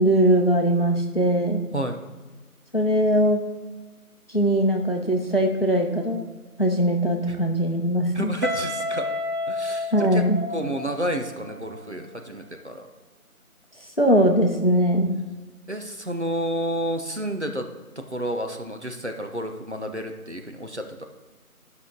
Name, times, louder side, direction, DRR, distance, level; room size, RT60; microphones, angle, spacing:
voice 1, 0.0-1.6 2.7-3.4 4.3-6.2 6.6-8.3 9.9-10.4 14.0-15.1, right 1 dB, 40° left, 3 dB, 0.9 m, -21 dB
voice 2, 8.1-9.1 9.5-10.3 10.5-12.9 15.7-17.7 18.0-21.1, right 1 dB, 50° right, 4 dB, 0.7 m, -30 dB
Guitar, 8.4-11.2, left 1 dB, 80° right, 1.4 m, -29 dB
10.5 x 5.7 x 3.8 m, 1.3 s
figure-of-eight pair, 175°, 45 cm